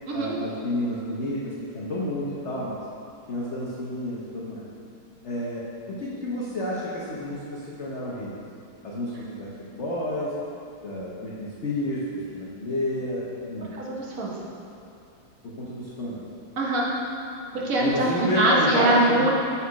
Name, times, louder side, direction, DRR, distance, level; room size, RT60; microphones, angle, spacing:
voice 1, 0.1-2.8 3.3-4.7 5.2-8.3 8.8-10.3 10.8-13.7 15.4-16.2 17.8-19.3, left 1 dB, 60° left, -7 dB, 0.7 m, -30 dB
voice 2, 13.7-14.3 16.6-16.9 17.5-19.3, right 2 dB, 50° right, -3 dB, 1.1 m, -23 dB
7.2 x 4.1 x 4.7 m, 2.6 s
omnidirectional pair, 2.3 m